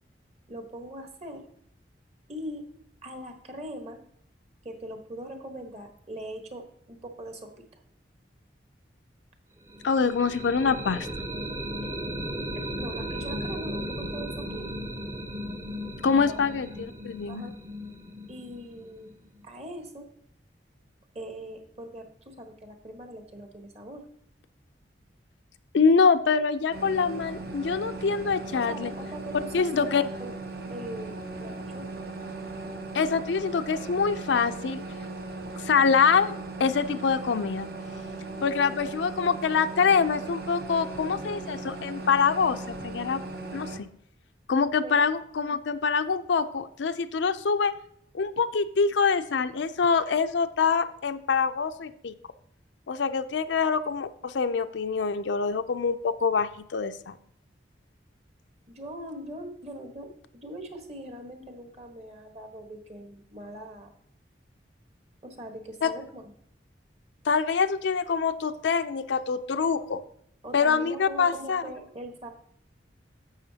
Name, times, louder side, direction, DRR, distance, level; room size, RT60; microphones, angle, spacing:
voice 1, 0.5-1.5 2.3-2.7 3.0-4.0 4.6-7.7 12.5-14.7 16.1-16.5 17.3-17.5 18.3-19.1 19.4-20.1 21.1-24.1 28.5-30.4 30.7-31.9 44.8-44.9 58.7-63.9 65.2-66.3 70.4-72.3, right 1 dB, 35° right, 4 dB, 1.2 m, -41 dB
sound 1, 9.7-19.4, equal, 15° right, 0.6 m, -36 dB
voice 2, 9.8-11.1 16.0-17.4 25.7-28.9 29.5-30.0 32.9-34.8 35.6-37.7 38.4-43.2 43.5-43.8 44.5-47.7 48.1-52.1 52.9-57.2 65.8-65.9 67.2-70.0 70.5-71.6, left 5 dB, 75° left, 10 dB, 0.5 m, -25 dB
sound 2, 26.7-43.8, right 2 dB, 55° right, 0.8 m, -38 dB
10.5 x 7.4 x 2.8 m, 0.69 s
head